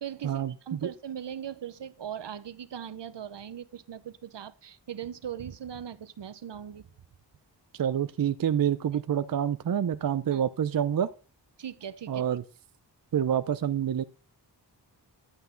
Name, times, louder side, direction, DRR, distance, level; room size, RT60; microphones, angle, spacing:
voice 1, 0.0-6.9 10.3-10.4 11.6-12.3, right 9 dB, 75° right, 0.8 m, -39 dB
voice 2, 7.7-11.1 12.1-12.4 13.1-14.0, right 9 dB, 55° right, 0.6 m, -27 dB
11.5 x 8.1 x 3.9 m
wide cardioid pair, 115°, 43 cm